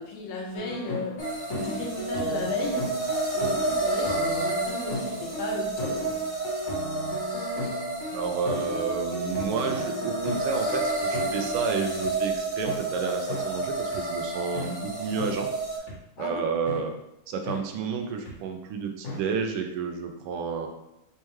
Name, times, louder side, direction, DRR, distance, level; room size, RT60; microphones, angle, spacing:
voice 1, 0.0-3.0 3.3-6.2 16.2-16.4, left 3 dB, 75° left, 1 dB, 1.4 m, -35 dB
sound 1, 0.5-12.1 12.6-12.8 13.3-13.4 13.9-14.0 14.5-14.7 15.2-15.3 15.9-16.0 16.7-16.8 17.4-17.6 18.2-18.3 19.0-19.2, left 2 dB, 45° left, 1.1 m, -35 dB
sound 2, 1.2-15.8, right 3 dB, 20° left, 0.6 m, -30 dB
voice 2, 8.1-15.5 16.2-16.9 17.3-20.7, right 5 dB, 85° right, 5 dB, 1.5 m, -30 dB
4.2 x 3.6 x 3.0 m, 0.87 s
omnidirectional pair, 2.4 m